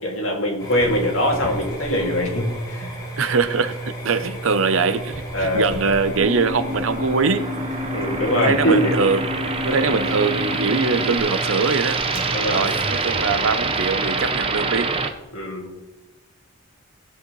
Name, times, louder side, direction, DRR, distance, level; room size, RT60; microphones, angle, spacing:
voice 1, 0.0-3.0 5.3-5.7 7.9-9.0 9.8-9.9 12.3-12.7 15.3-15.8, equal, 70° left, 2.4 m, -22 dB
sound 1, 0.6-15.1, right 1 dB, 20° left, 2.5 m, -34 dB
voice 2, 3.2-7.5 8.4-9.3 9.6-12.0 12.5-14.9, right 4 dB, 65° right, 0.7 m, -22 dB
sound 2, 6.0-15.1, right 4 dB, 25° right, 0.7 m, -26 dB
sound 3, 6.2-11.2, left 4 dB, 10° right, 4.0 m, -31 dB
18.0 x 7.9 x 3.2 m
head